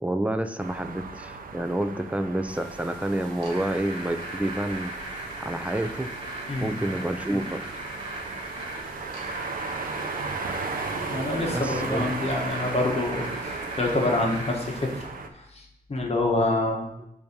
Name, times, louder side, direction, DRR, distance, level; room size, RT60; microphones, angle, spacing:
voice 1, 0.0-4.9 5.4-6.1 6.6-7.7 11.5-12.1, right 1 dB, 10° right, 8 dB, 0.3 m, -29 dB
sound 1, 0.6-15.3, right 4 dB, 65° right, 0.6 m, -36 dB
sound 2, 2.5-15.0, right 1 dB, 30° right, 1.7 m, -39 dB
voice 2, 11.1-15.1 15.3-16.8, left 2 dB, 40° left, 0 dB, 1.0 m, -27 dB
6.9 x 2.7 x 5.2 m, 0.85 s
wide cardioid pair, 145°, 16 cm